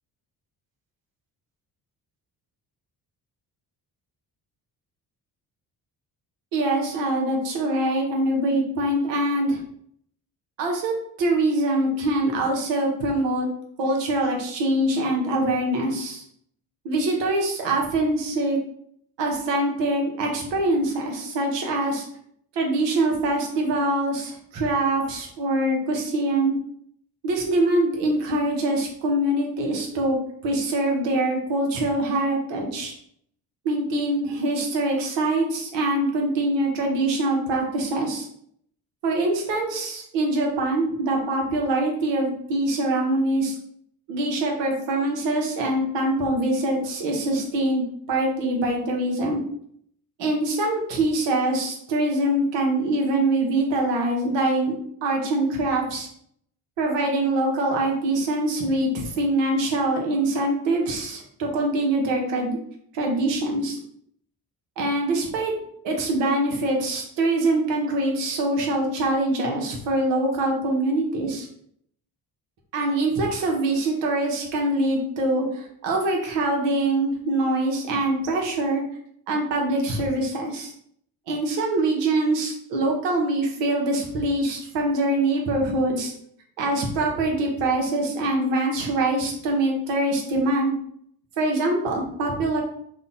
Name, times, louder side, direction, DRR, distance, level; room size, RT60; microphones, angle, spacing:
voice 1, 6.5-9.6 10.6-13.5 13.8-16.2 16.8-18.6 19.2-22.0 22.5-26.5 27.2-30.2 30.4-32.9 33.6-38.3 39.0-43.6 44.1-49.4 50.2-54.7 55.0-56.1 56.8-62.6 62.9-63.8 64.8-65.5 65.8-71.5 72.7-78.8 79.3-80.7 81.3-86.1 86.6-90.7 91.4-92.6, right 1 dB, 80° right, 1 dB, 0.8 m, -24 dB
2.7 x 2.1 x 2.6 m, 0.67 s
supercardioid pair, 60°, 43 cm